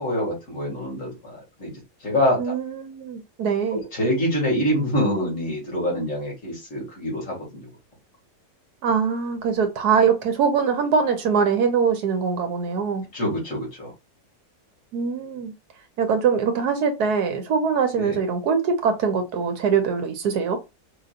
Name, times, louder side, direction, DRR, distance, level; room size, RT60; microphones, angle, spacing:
voice 1, 0.0-2.5 3.7-7.7 13.1-13.9 18.0-18.2, equal, 50° left, 2.5 m, -26 dB
voice 2, 2.4-3.8 8.8-13.0 14.9-15.5 16.0-20.6, right 6 dB, 70° right, 1.2 m, -22 dB
5.0 x 3.0 x 2.4 m
omnidirectional pair, 1.8 m